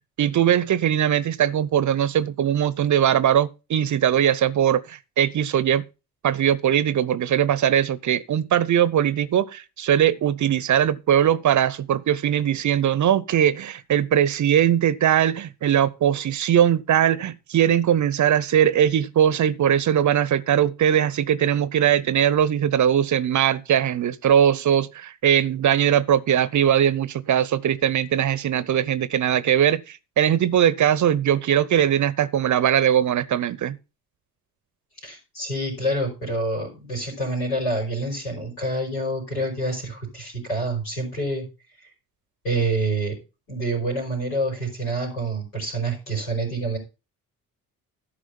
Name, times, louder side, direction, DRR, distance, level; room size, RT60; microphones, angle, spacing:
voice 1, 0.2-5.8 6.2-33.8, right 10 dB, 40° right, 0.8 m, -20 dB
voice 2, 35.0-41.4 42.4-43.2 43.5-46.8, right 2 dB, 85° left, 4.9 m, -27 dB
12.5 x 5.0 x 5.2 m
figure-of-eight pair, 45°, 43 cm